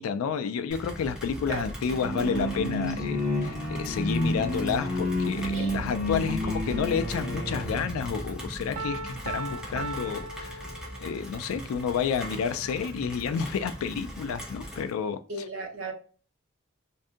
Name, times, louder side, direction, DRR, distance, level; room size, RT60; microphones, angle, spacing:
voice 1, 0.0-10.6 11.0-15.2, left 6 dB, 85° left, 0.3 m, -30 dB
Rain, 0.7-14.9, equal, 5° right, 0.5 m, -39 dB
sound 1, 1.9-7.8, left 1 dB, 45° left, 1.2 m, -30 dB
Piano, 8.8-11.3, right 3 dB, 90° right, 0.3 m, -37 dB
voice 2, 15.3-15.9, right 2 dB, 65° right, 0.8 m, -35 dB
2.6 x 2.5 x 2.3 m
head